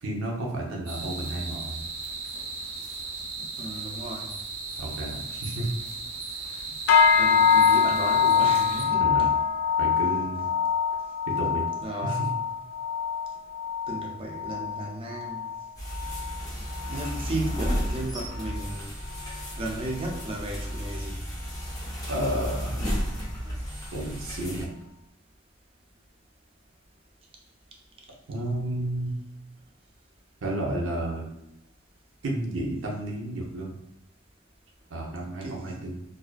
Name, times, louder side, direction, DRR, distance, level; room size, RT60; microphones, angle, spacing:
voice 1, 0.0-1.9 4.8-5.7 6.3-6.6 9.0-9.3 9.8-10.5 11.3-11.7 12.0-12.3 22.1-22.8 23.9-24.7 28.3-29.1 30.4-31.3 32.2-33.8 34.9-36.0, right 1 dB, 70° right, -1 dB, 0.6 m, -31 dB
sound 1, 0.9-8.9, right 3 dB, 85° right, 1.0 m, -36 dB
voice 2, 3.6-4.3 7.2-9.1 11.8-12.2 13.9-15.4 16.9-18.9 19.6-21.2 35.4-35.7, right 1 dB, 25° right, 0 dB, 0.4 m, -34 dB
sound 2, 6.9-16.4 16.7-17.2 17.6-17.9 18.5-18.6, left 7 dB, 60° left, 0.3 m, -24 dB
sound 3, 15.8-24.7, equal, 20° left, 0.6 m, -33 dB
2.4 x 2.2 x 2.3 m, 0.83 s
head